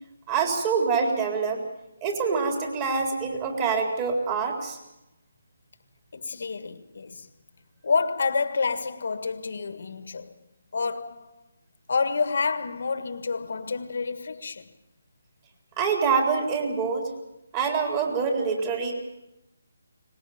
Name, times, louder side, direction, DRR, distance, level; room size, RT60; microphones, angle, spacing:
voice 1, 0.3-1.6 2.0-4.8 15.8-17.1 17.5-18.9, right 5 dB, 20° right, 3.9 m, -25 dB
voice 2, 6.1-7.3 7.8-10.3 10.7-11.3 11.9-14.7, left 4 dB, 60° left, 1.6 m, -28 dB
23.5 x 20.0 x 7.2 m
hypercardioid pair, 160°, 0 cm